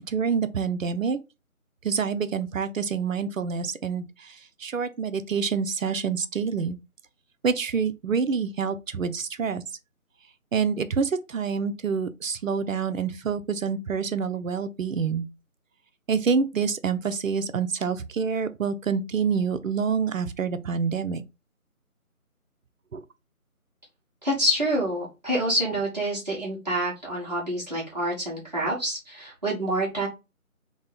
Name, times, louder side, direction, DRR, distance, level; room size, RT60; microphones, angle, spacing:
voice 1, 0.1-1.2 1.8-6.8 7.4-9.6 10.5-15.3 16.1-21.2 22.9-23.0, right 6 dB, 65° right, 0.5 m, -27 dB
voice 2, 24.2-30.1, right 1 dB, 30° right, 1.3 m, -27 dB
3.5 x 2.0 x 4.0 m
figure-of-eight pair, 170°, 43 cm